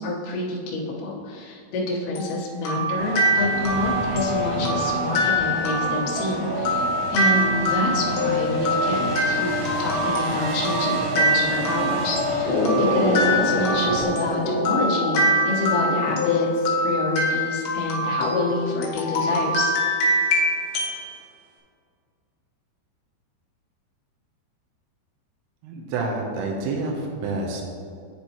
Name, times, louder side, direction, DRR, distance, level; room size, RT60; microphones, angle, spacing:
voice 1, 0.0-6.9 7.1-9.5 9.8-19.8, left 2 dB, 90° left, -5 dB, 1.8 m, -27 dB
sound 1, 2.2-21.0, equal, 75° left, 2.4 m, -24 dB
sound 2, 3.0-14.1, right 1 dB, 70° right, 2.2 m, -29 dB
sound 3, 12.4-16.4, left 2 dB, 55° left, 1.9 m, -26 dB
voice 2, 25.6-27.6, right 3 dB, 85° right, -1 dB, 2.4 m, -28 dB
10.0 x 4.4 x 2.8 m, 2.3 s
omnidirectional pair, 5.5 m